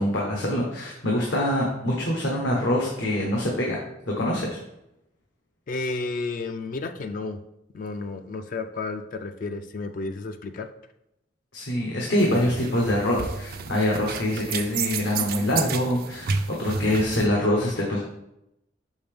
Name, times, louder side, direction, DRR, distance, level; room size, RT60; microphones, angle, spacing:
voice 1, 0.0-3.8 4.1-4.6 11.5-18.0, left 1 dB, 80° left, -2 dB, 1.1 m, -24 dB
voice 2, 5.7-7.4 7.7-10.7, left 3 dB, 45° left, 8 dB, 0.3 m, -32 dB
sound 1, 12.2-17.3, right 5 dB, 55° right, 0.4 m, -31 dB
5.8 x 5.3 x 3.5 m, 0.85 s
head